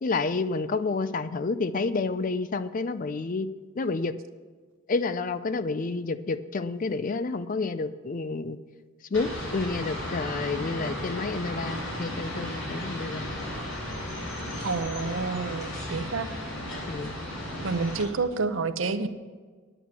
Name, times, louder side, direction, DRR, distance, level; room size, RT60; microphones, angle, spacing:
voice 1, 0.0-3.5 3.8-4.1 4.9-8.6 9.1-13.3 16.9-17.1, left 3 dB, 40° left, 13 dB, 0.4 m, -29 dB
sound 1, 9.1-18.0, left 1 dB, 70° left, 4.1 m, -35 dB
voice 2, 14.6-16.3 17.6-19.1, right 4 dB, 65° right, 11 dB, 0.7 m, -29 dB
10.0 x 9.1 x 5.9 m, 1.5 s
head